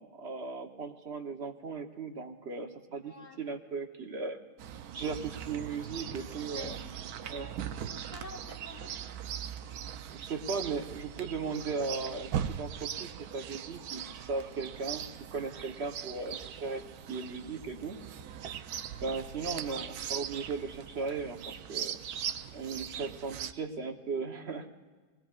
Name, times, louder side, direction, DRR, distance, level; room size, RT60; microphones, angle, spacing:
voice 1, 0.0-4.4 4.9-6.8 7.3-7.5 10.1-16.8 17.1-18.0 19.0-22.0 22.5-24.7, right 4 dB, 45° right, 4 dB, 1.1 m, -37 dB
voice 2, 3.0-3.4 5.7-7.5 7.8-8.9 19.5-19.9 22.9-23.1, left 3 dB, 65° left, -1 dB, 2.8 m, -51 dB
Chirp tweet, 4.6-23.5, right 9 dB, 70° right, 1.1 m, -40 dB
26.5 x 20.0 x 2.4 m, 1.4 s
omnidirectional pair, 1.8 m